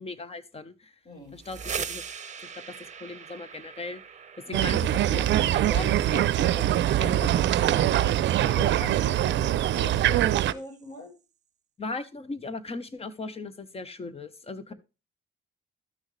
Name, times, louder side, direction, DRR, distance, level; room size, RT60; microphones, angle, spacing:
voice 1, 0.0-0.9 1.3-2.0 2.4-2.7 3.0-4.0 4.5-6.7 7.0-7.9 11.8-14.7, left 3 dB, 30° left, 14 dB, 1.0 m, -38 dB
voice 2, 1.0-1.4 4.5-4.8 7.5-7.9 8.2-11.1 14.7-14.8, left 2 dB, 50° left, -1 dB, 5.0 m, -42 dB
sound 1, 1.2-11.0, right 6 dB, 35° right, 0.9 m, -43 dB
sound 2, 4.5-10.5, right 12 dB, 65° right, 0.5 m, -23 dB
12.5 x 6.3 x 3.2 m, 0.29 s
cardioid pair, 90°, 20 cm